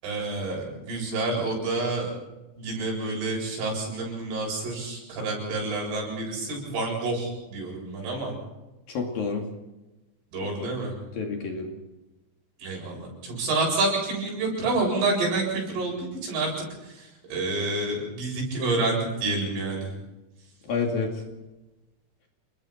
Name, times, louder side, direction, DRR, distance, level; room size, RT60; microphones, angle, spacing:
voice 1, 0.0-2.1 2.6-8.3 10.3-10.9 12.6-16.5 16.8-19.9, right 2 dB, 75° right, -1 dB, 10.0 m, -28 dB
voice 2, 8.9-9.4 10.4-10.8 11.2-11.7 20.7-21.2, left 4 dB, 55° left, 2 dB, 3.7 m, -29 dB
29.5 x 21.0 x 4.4 m, 1.0 s
omnidirectional pair, 5.6 m